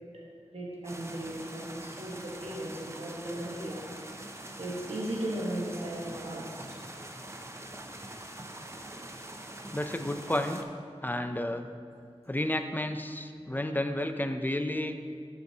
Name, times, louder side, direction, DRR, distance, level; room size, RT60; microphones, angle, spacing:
voice 1, 0.5-3.8 4.1-4.2 4.6-6.8, right 1 dB, 65° right, -5 dB, 1.4 m, -36 dB
sound 1, 0.8-10.6, right 1 dB, 25° right, 0.7 m, -44 dB
voice 2, 9.7-10.6 11.0-11.7 12.3-15.0, left 1 dB, 15° left, 7 dB, 0.5 m, -31 dB
11.0 x 6.8 x 2.8 m, 2.2 s
wide cardioid pair, 65°, 11 cm